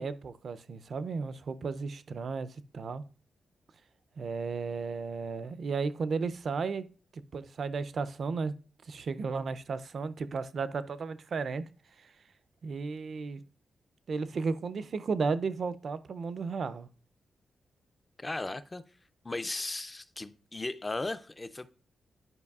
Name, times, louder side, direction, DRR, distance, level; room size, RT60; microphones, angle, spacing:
voice 1, 0.0-3.0 4.2-6.9 7.1-8.5 8.9-11.6 12.6-13.4 14.1-16.9, right 4 dB, 50° right, 0.4 m, -34 dB
voice 2, 18.2-18.8 19.2-21.7, left 2 dB, 20° left, 0.3 m, -36 dB
10.5 x 5.3 x 2.3 m
wide cardioid pair, 155°, 0 cm